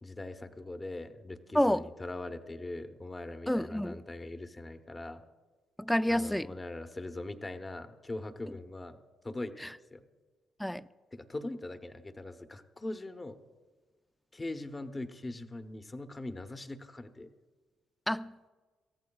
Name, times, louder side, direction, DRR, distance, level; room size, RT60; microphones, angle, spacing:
voice 1, 0.0-5.2 6.1-9.0 9.2-9.6 9.9-10.0 11.1-13.4 14.3-17.3, left 2 dB, 20° left, 0.9 m, -41 dB
voice 2, 1.5-1.9 3.5-4.0 5.8-6.5 10.6-10.9 18.1-18.5, left 1 dB, 5° left, 0.4 m, -29 dB
27.0 x 14.0 x 2.4 m
cardioid pair, 90°, 0 cm